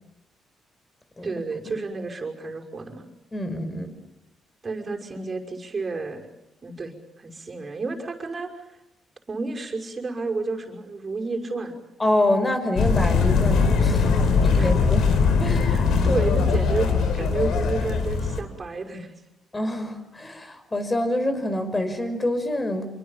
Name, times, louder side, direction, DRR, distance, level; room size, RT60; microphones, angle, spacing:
voice 1, 1.2-3.1 4.6-6.3 6.6-8.5 9.3-11.8 14.6-14.7 15.6-19.1, right 3 dB, 35° right, 3 dB, 5.7 m, -31 dB
voice 2, 3.3-3.9 12.0-14.1 14.4-15.7 19.5-22.8, left 1 dB, 20° left, 9 dB, 5.5 m, -26 dB
sound 1, 12.8-18.4, left 5 dB, 75° left, 4.5 m, -21 dB
27.5 x 24.0 x 7.3 m, 0.92 s
cardioid pair, 90°, 0 cm